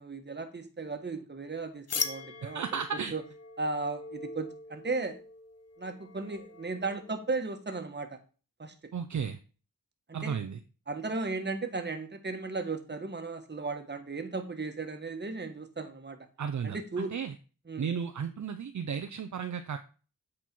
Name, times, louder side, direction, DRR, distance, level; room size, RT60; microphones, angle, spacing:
voice 1, 0.0-2.6 2.9-3.2 3.6-5.2 5.8-8.1 8.6-8.7 10.1-10.4 10.9-16.2 16.6-17.1 17.7-17.8, right 3 dB, 30° right, 6 dB, 1.3 m, -35 dB
sound 1, 1.9-7.4, left 5 dB, 45° left, 0.8 m, -41 dB
voice 2, 2.4-3.1 8.9-9.4 10.1-10.6 16.4-17.3 17.8-19.8, right 7 dB, 55° right, 8 dB, 0.6 m, -34 dB
8.3 x 4.3 x 4.4 m, 0.36 s
wide cardioid pair, 75°, 35 cm